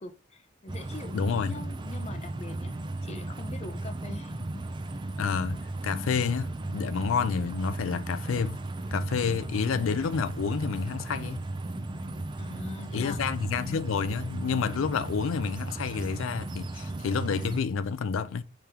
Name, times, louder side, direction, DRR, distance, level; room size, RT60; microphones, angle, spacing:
voice 1, 0.0-1.2 1.4-4.7 12.4-13.3, left 2 dB, 30° left, 0.5 m, -43 dB
sound 1, 0.7-17.6, right 2 dB, 25° right, 0.4 m, -36 dB
voice 2, 1.1-1.6 5.2-8.6 8.9-11.5 12.9-18.4, left 5 dB, 85° left, 0.4 m, -29 dB
5.2 x 3.5 x 2.9 m
head